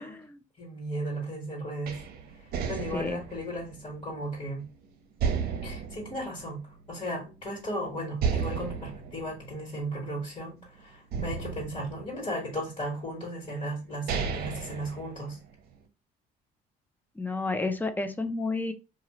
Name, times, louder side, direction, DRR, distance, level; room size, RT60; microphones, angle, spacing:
voice 1, 0.0-0.4 2.9-3.2 17.2-18.7, left 3 dB, 10° left, 9 dB, 0.4 m, -31 dB
voice 2, 0.6-2.0 2.7-4.6 5.6-6.6 6.9-15.4, equal, 35° left, -3 dB, 1.5 m, -35 dB
sound 1, 1.9-4.7 5.2-7.1 7.5-7.6 8.2-10.6 11.1-12.7 13.4-13.5 13.9-15.7, right 6 dB, 65° right, 0.7 m, -34 dB
2.9 x 2.4 x 3.0 m, 0.30 s
cardioid pair, 110°, 17 cm